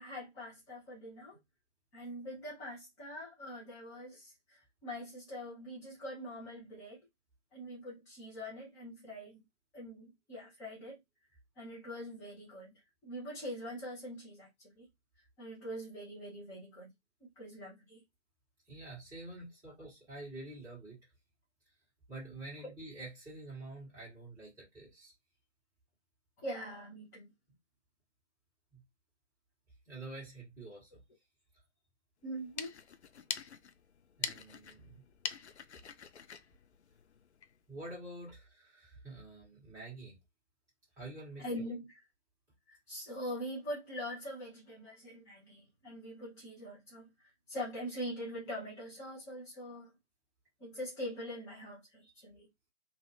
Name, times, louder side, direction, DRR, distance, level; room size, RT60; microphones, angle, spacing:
voice 1, 0.0-1.4 1.9-7.0 7.5-9.4 9.7-11.0 11.6-14.8 15.4-16.9 17.2-18.0 22.6-22.7 26.4-27.3 32.2-32.7 41.4-42.0 42.7-47.1 47.5-49.9 50.6-52.5, equal, 10° left, 0.9 m, -43 dB
voice 2, 18.7-21.0 22.1-25.1 28.7-28.8 29.9-30.9 34.2-35.0 37.7-40.2 41.0-41.7, right 2 dB, 10° right, 1.8 m, -47 dB
sound 1, 32.3-37.6, left 7 dB, 65° left, 0.5 m, -44 dB
3.1 x 2.5 x 3.1 m
figure-of-eight pair, 145°, 36 cm